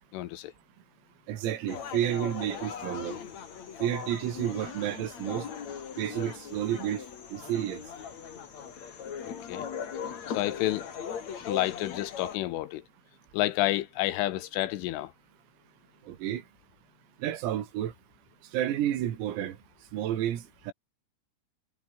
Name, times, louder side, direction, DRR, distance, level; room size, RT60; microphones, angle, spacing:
voice 1, 0.1-0.5 9.3-9.7 10.3-10.9 11.5-12.8 13.3-15.1, left 15 dB, 75° left, 3.5 m, -30 dB
voice 2, 1.3-3.2 3.8-5.5 6.0-7.0 7.3-7.8 16.1-16.4 17.2-17.9 18.5-19.6 19.9-20.7, right 11 dB, 85° right, 5.1 m, -30 dB
sound 1, 1.7-12.4, left 7 dB, 45° left, 2.8 m, -39 dB
omnidirectional pair, 6.0 m